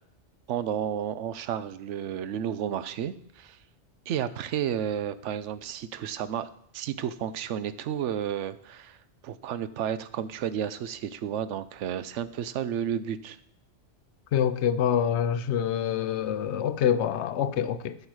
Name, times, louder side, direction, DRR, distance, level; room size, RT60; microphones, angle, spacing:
voice 1, 0.5-3.6 4.1-9.0 9.2-13.4, right 9 dB, 90° right, 0.9 m, -32 dB
voice 2, 14.3-18.0, left 9 dB, 75° left, 0.9 m, -26 dB
13.0 x 5.5 x 4.7 m
omnidirectional pair, 1.2 m